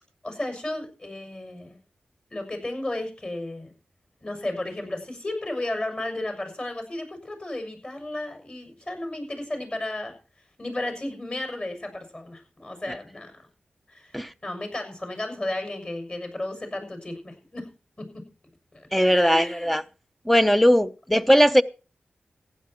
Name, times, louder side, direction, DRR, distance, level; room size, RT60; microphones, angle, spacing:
voice 1, 0.2-1.8 2.3-3.7 4.2-10.1 10.6-13.4 13.9-17.7 18.0-18.1 18.7-19.7, left 1 dB, 30° left, 6.7 m, -33 dB
voice 2, 18.9-19.8 20.3-21.6, equal, 5° left, 0.7 m, -19 dB
15.5 x 10.5 x 4.5 m
cardioid pair, 60°, 4 cm